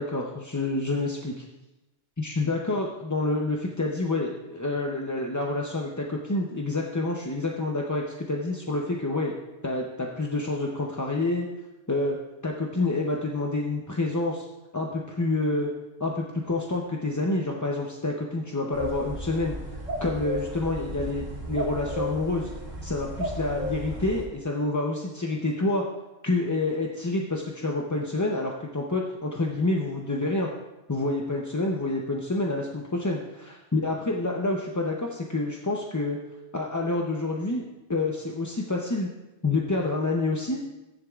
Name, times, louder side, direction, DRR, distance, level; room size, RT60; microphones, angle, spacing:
voice 1, 0.0-1.3 2.2-9.3 9.6-11.5 11.9-12.2 12.4-14.4 14.7-15.7 16.0-19.6 20.0-22.5 22.8-25.8 26.2-30.5 30.9-33.2 33.7-36.2 36.5-37.6 37.9-39.1 39.4-40.6, left 2 dB, 20° left, 0 dB, 0.6 m, -28 dB
sound 1, 18.7-24.3, equal, 90° right, 2.3 m, -34 dB
14.5 x 10.0 x 2.4 m, 1.0 s
omnidirectional pair, 1.2 m